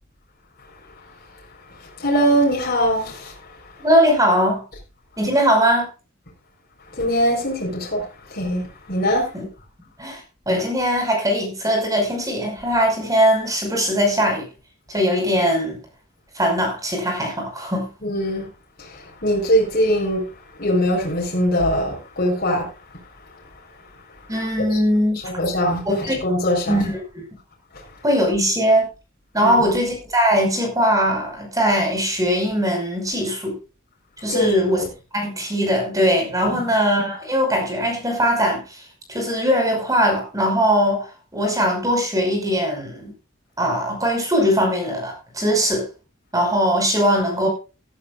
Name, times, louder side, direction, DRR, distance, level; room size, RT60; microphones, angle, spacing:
voice 1, 2.0-3.3 6.9-9.3 18.0-18.5 18.8-20.2 20.6-22.7 24.7-24.8 25.2-26.8 29.4-29.8 34.3-34.9 36.4-36.6, equal, 45° left, 4.7 m, -22 dB
voice 2, 3.8-4.6 5.2-5.9 9.3-9.5 10.0-14.5 14.9-15.8 16.4-17.9 24.3-25.2 25.9-26.2 26.7-27.2 28.0-28.9 29.3-33.5 34.2-34.8 35.1-38.8 39.1-41.1 41.3-43.1 43.6-45.9 46.3-47.5, equal, 15° right, 5.6 m, -20 dB
15.5 x 14.0 x 2.5 m
head